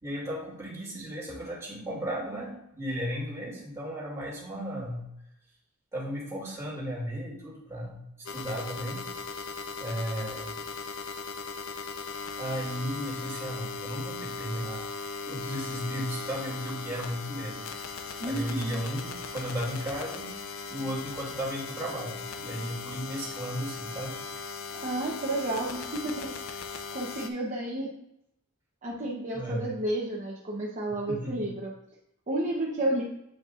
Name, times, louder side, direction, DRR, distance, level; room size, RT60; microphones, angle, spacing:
voice 1, 0.0-5.0 5.9-8.0 8.3-9.0 9.8-10.6 12.4-15.0 15.3-17.7 18.2-24.1 29.3-29.7 31.1-31.5, equal, 15° right, -6 dB, 2.5 m, -35 dB
sound 1, 8.3-27.3, left 4 dB, 65° left, 0.6 m, -38 dB
voice 2, 18.2-18.8 24.7-26.6 26.9-27.9 28.8-31.7 32.3-33.0, right 1 dB, 35° right, -4 dB, 0.9 m, -31 dB
8.0 x 5.2 x 2.5 m, 0.83 s
head